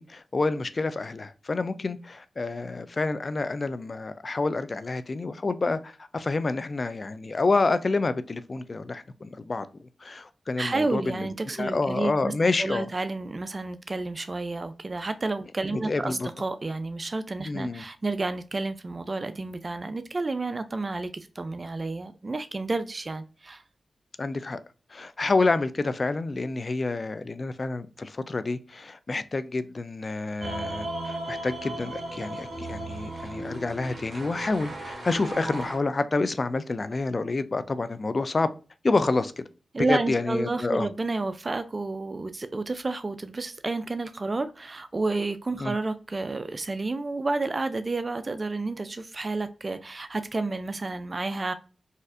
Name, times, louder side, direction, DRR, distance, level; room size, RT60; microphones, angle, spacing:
voice 1, 0.0-9.7 10.0-11.3 11.6-12.9 15.7-16.3 17.4-17.8 24.2-24.6 24.9-38.5 38.8-39.4 39.8-40.9 45.6-45.7, left 3 dB, 50° left, 0.4 m, -28 dB
voice 2, 10.6-12.3 12.6-23.6 39.7-51.5, right 3 dB, 40° right, 0.3 m, -30 dB
sound 1, 30.4-35.8, right 1 dB, 65° right, 1.6 m, -36 dB
4.1 x 2.5 x 2.4 m
cardioid pair, 50°, 0 cm